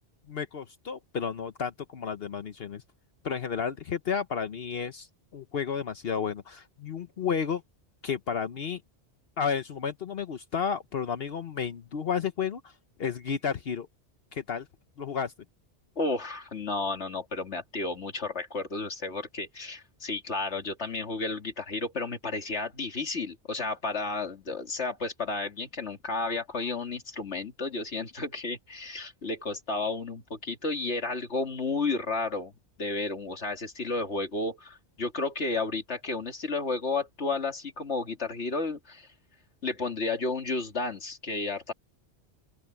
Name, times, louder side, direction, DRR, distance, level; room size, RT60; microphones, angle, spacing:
voice 1, 0.3-2.8 3.2-5.1 5.3-7.6 8.0-8.8 9.4-12.7 13.0-13.9 14.3-14.7 15.0-15.3, left 6 dB, 65° left, 1.1 m, -32 dB
voice 2, 16.0-32.5 32.8-39.1 39.6-41.7, left 3 dB, 85° left, 2.7 m, -32 dB
open air
omnidirectional pair, 1.1 m